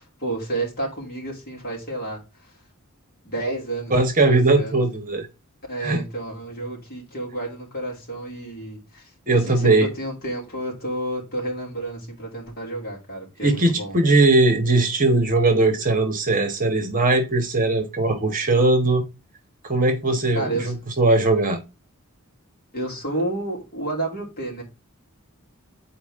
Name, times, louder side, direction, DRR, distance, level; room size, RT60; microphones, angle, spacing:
voice 1, 0.0-2.5 3.2-4.0 4.2-4.9 5.7-13.9 20.3-20.9 22.7-24.6, right 2 dB, 45° left, 3.1 m, -31 dB
voice 2, 3.9-5.3 5.8-6.0 9.3-9.9 13.4-19.0 19.6-21.6, right 2 dB, 40° right, 1.2 m, -19 dB
8.3 x 4.4 x 3.6 m
head